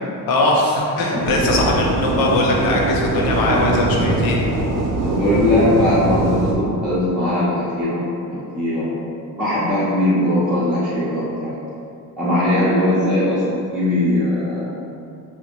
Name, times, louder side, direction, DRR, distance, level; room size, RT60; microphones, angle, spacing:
voice 1, 0.3-4.4, left 2 dB, 70° left, -2 dB, 0.7 m, -20 dB
sound 1, 1.2-6.5, right 2 dB, 45° right, 0.5 m, -22 dB
voice 2, 5.0-8.0 8.3-8.9 9.4-11.5 12.2-14.7, left 1 dB, ahead, -12 dB, 0.7 m, -19 dB
3.9 x 2.1 x 2.9 m, 2.5 s
cardioid pair, 130°, 36 cm